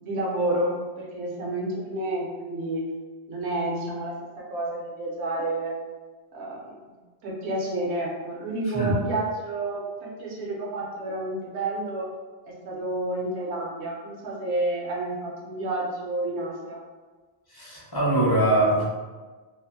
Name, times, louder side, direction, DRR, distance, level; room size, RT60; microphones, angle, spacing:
voice 1, 0.0-2.8 3.3-5.7 6.3-7.0 7.2-12.0 12.5-16.8, right 2 dB, 80° right, -4 dB, 0.9 m, -30 dB
voice 2, 17.5-18.8, right 1 dB, 30° left, -5 dB, 0.5 m, -22 dB
2.5 x 2.4 x 2.6 m, 1.3 s
omnidirectional pair, 1.1 m